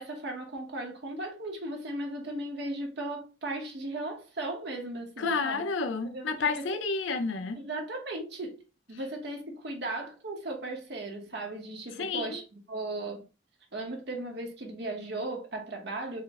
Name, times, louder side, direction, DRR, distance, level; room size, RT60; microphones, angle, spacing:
voice 1, 0.0-5.7 6.0-6.5 7.6-8.6 8.9-13.2 13.7-16.2, right 2 dB, 55° right, 0.8 m, -37 dB
voice 2, 5.2-7.6 12.0-12.4, left 4 dB, 70° left, 0.4 m, -30 dB
4.3 x 2.0 x 3.4 m
head